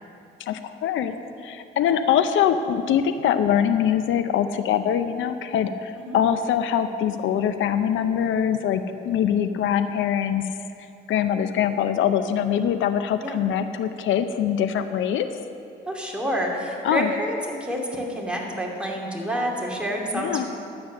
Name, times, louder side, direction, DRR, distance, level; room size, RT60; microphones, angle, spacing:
voice 1, 0.4-1.1 1.4-10.6 11.1-15.3 16.8-17.1 20.1-20.4, left 9 dB, 80° left, 10 dB, 0.6 m, -23 dB
voice 2, 15.9-20.5, equal, 5° right, -2 dB, 2.5 m, -28 dB
12.0 x 8.7 x 6.5 m, 2.6 s
cardioid pair, 90°, 20 cm